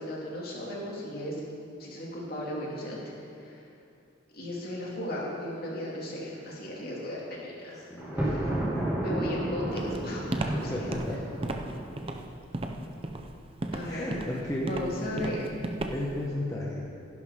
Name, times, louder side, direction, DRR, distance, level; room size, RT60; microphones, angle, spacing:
voice 1, 0.0-1.4 1.8-3.6 4.3-8.5 9.0-10.8 13.7-14.1 14.7-15.5, left 1 dB, 50° left, -4 dB, 2.6 m, -36 dB
voice 2, 7.9-9.3 10.7-11.2 12.8-12.9 13.8-14.8 15.0-15.3 15.9-16.8, left 1 dB, 15° left, -5 dB, 1.1 m, -34 dB
Thunder, 8.0-12.1, right 1 dB, 10° right, 2.3 m, -32 dB
Walk footsteps, 9.8-16.2, right 2 dB, 30° right, 0.6 m, -35 dB
15.5 x 11.0 x 3.8 m, 2.5 s
head